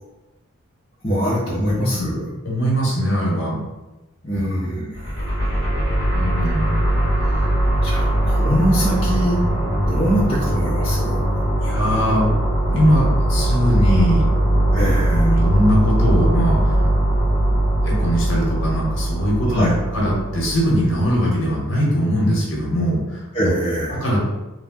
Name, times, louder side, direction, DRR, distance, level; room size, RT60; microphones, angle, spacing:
voice 1, 1.0-2.3 4.2-5.2 7.8-9.4 9.8-11.2 14.7-15.3 19.5-19.7 23.3-24.1, equal, 25° left, -8 dB, 0.6 m, -23 dB
voice 2, 1.5-2.1 2.4-3.6 4.3-4.9 6.1-6.8 11.6-12.3 12.7-14.8 15.1-16.8 17.8-23.5 24.0-24.2, equal, 55° left, -4 dB, 0.9 m, -21 dB
sound 1, 4.9-21.1, right 1 dB, 60° right, 1.4 m, -20 dB
2.6 x 2.2 x 3.6 m, 1.1 s
head